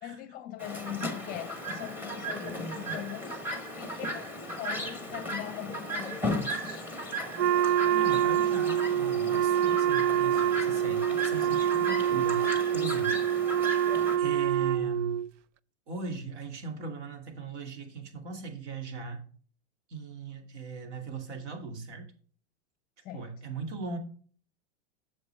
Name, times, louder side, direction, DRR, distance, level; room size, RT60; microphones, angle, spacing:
voice 1, 0.0-3.4 3.8-6.9 23.0-23.2, left 12 dB, 25° left, 0.6 m, -41 dB
Chirp tweet, 0.6-14.2, right 1 dB, 5° right, 1.1 m, -36 dB
Wind instrument woodwind instrument, 7.4-15.3, right 10 dB, 85° right, 0.5 m, -26 dB
voice 2, 7.6-13.7 14.2-15.2 15.9-19.2 19.9-22.1 23.1-24.0, right 4 dB, 70° right, 2.6 m, -39 dB
9.3 x 6.7 x 3.4 m
supercardioid pair, 160°, 36 cm